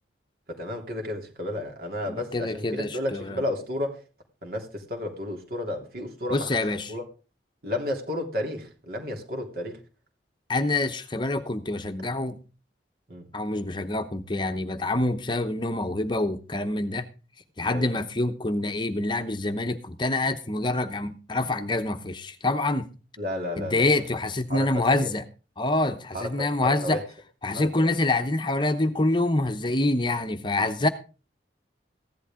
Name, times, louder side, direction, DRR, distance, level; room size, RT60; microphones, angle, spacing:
voice 1, 0.5-4.0 4.4-6.6 6.9-7.0 7.6-9.8 13.1-13.3 17.7-18.0 23.2-24.1 24.5-25.1 26.1-27.0 27.5-27.9, left 1 dB, 55° right, 3.3 m, -32 dB
voice 2, 2.1-3.4 6.3-6.9 10.5-12.4 13.3-17.1 17.6-22.9 23.6-25.2 25.6-27.0 27.4-30.9, left 2 dB, 25° left, 0.8 m, -26 dB
15.5 x 11.5 x 3.7 m
head